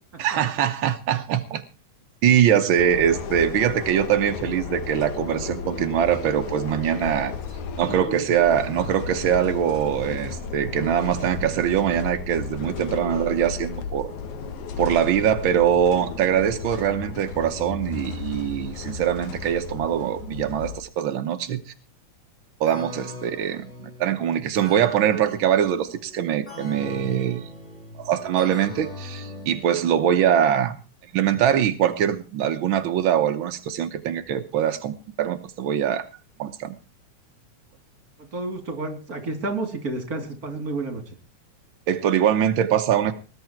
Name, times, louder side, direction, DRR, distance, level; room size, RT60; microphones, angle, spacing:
voice 1, 0.2-1.6 2.2-7.3 7.8-14.1 14.8-21.6 22.6-27.4 28.0-30.8 31.1-36.0 36.4-36.7 41.9-43.1, right 9 dB, 75° right, 7 dB, 1.1 m, -23 dB
sound 1, 2.8-20.8, left 5 dB, 70° left, 2.8 m, -33 dB
sound 2, 22.7-30.3, left 1 dB, 20° left, 7.7 m, -40 dB
voice 2, 38.3-41.0, right 2 dB, 30° right, 6 dB, 3.0 m, -30 dB
19.5 x 10.5 x 4.5 m, 0.35 s
omnidirectional pair, 3.5 m